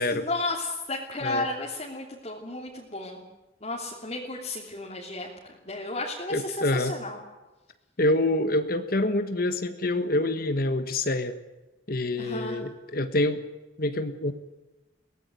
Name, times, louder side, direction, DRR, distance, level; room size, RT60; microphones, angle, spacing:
voice 1, 0.0-3.3 3.6-5.3 5.6-7.2 12.2-12.6, left 2 dB, 35° left, -2 dB, 3.1 m, -33 dB
voice 2, 6.3-7.0 8.0-11.4 11.9-13.4 13.8-14.3, left 1 dB, 50° left, 9 dB, 1.5 m, -26 dB
22.5 x 18.0 x 9.2 m, 1.1 s
head